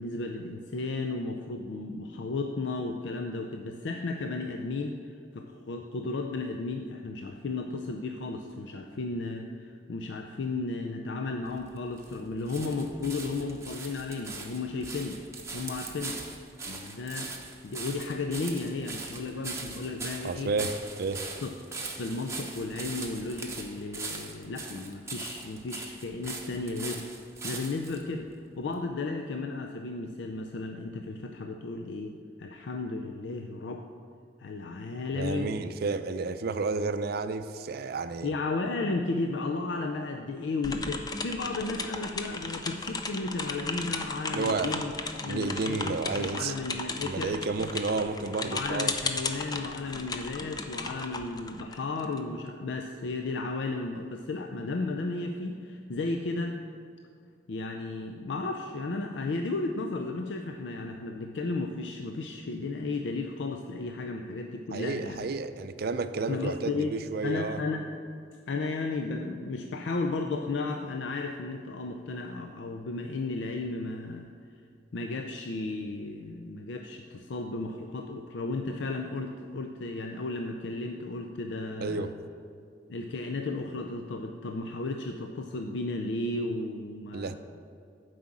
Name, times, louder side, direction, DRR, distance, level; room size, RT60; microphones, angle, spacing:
voice 1, 0.0-5.0 5.3-15.2 15.5-16.2 16.7-17.4 17.6-20.5 21.4-21.6 22.0-27.1 27.4-33.9 34.4-35.5 38.2-44.9 45.2-47.4 48.4-56.6 57.5-65.3 66.3-66.9 67.2-67.9 68.5-74.3 74.9-82.1 82.9-87.3, left 3 dB, 80° left, 4 dB, 0.5 m, -34 dB
sound 1, 11.5-28.0 28.7-28.8, right 3 dB, 15° right, 0.9 m, -41 dB
voice 2, 20.2-21.2 35.2-38.3 44.3-44.7 45.3-46.5 47.0-48.9 64.7-67.6 81.8-82.1 87.1-87.3, right 3 dB, 60° right, 11 dB, 0.4 m, -31 dB
sound 2, 40.6-52.2, left 3 dB, 20° left, 0.5 m, -35 dB
7.6 x 5.0 x 7.2 m, 2.3 s
head